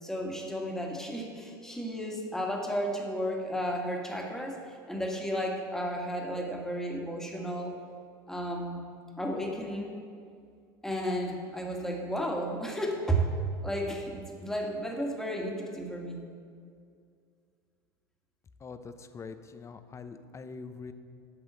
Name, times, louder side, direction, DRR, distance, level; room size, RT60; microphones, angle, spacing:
voice 1, 0.0-7.7 8.3-8.8 9.2-10.0 10.8-13.3 13.6-16.2, equal, 5° left, 0 dB, 1.9 m, -33 dB
voice 2, 18.6-20.9, left 4 dB, 25° left, 10 dB, 0.7 m, -44 dB
9.0 x 6.2 x 7.7 m, 2.3 s
hypercardioid pair, 85°, 11 cm